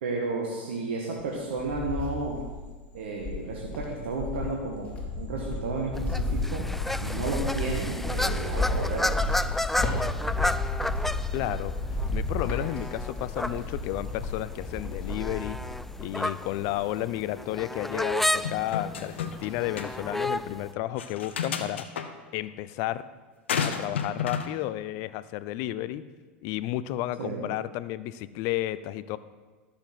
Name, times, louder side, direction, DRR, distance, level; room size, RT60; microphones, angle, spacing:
voice 1, 0.0-2.4 2.9-4.9 5.2-6.7 7.0-9.3 27.2-27.5, right 3 dB, 75° right, -2 dB, 1.7 m, -32 dB
Cricket, 1.2-2.7 3.2-16.1 16.4-17.0, left 2 dB, 20° left, 3.4 m, -32 dB
sound 1, 5.9-20.7, left 1 dB, 5° left, 0.4 m, -33 dB
voice 2, 11.3-11.8 12.1-15.6 16.0-21.9 22.3-23.1 23.6-26.0 26.4-29.2, left 15 dB, 55° left, 16 dB, 0.5 m, -32 dB
sound 2, 18.4-19.5 19.8-19.9 21.0-22.1 23.5-24.5, left 7 dB, 85° left, 0.9 m, -31 dB
13.0 x 6.9 x 6.0 m, 1.4 s
hypercardioid pair, 95°, 6 cm